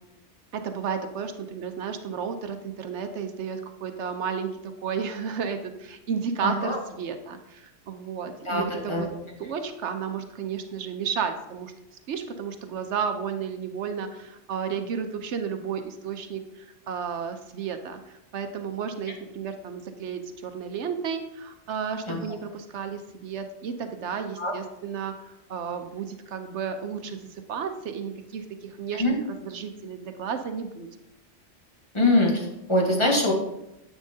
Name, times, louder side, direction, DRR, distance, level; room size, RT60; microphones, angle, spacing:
voice 1, 0.5-9.1 9.4-11.7 12.1-18.0 18.3-30.9, right 6 dB, 75° right, 7 dB, 1.0 m, -33 dB
voice 2, 6.4-6.8 8.4-9.1 22.1-22.2 24.4-24.5 28.9-29.1 31.9-33.3, left 1 dB, 25° left, -1 dB, 1.5 m, -23 dB
9.9 x 8.1 x 2.7 m, 0.89 s
omnidirectional pair, 1.2 m